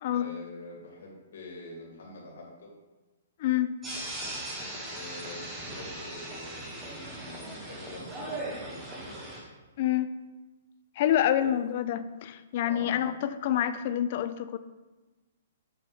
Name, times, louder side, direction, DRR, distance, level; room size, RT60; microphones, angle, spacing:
voice 1, 0.1-2.7 4.9-9.2 11.4-11.5 12.6-13.0, left 2 dB, 70° left, -2 dB, 2.4 m, -45 dB
voice 2, 3.4-3.8 9.8-10.2 11.0-14.6, left 11 dB, 40° left, 12 dB, 0.3 m, -27 dB
sound 1, 3.8-9.4, right 1 dB, 10° right, 1.0 m, -39 dB
6.9 x 3.5 x 6.0 m, 1.2 s
hypercardioid pair, 170°, 0 cm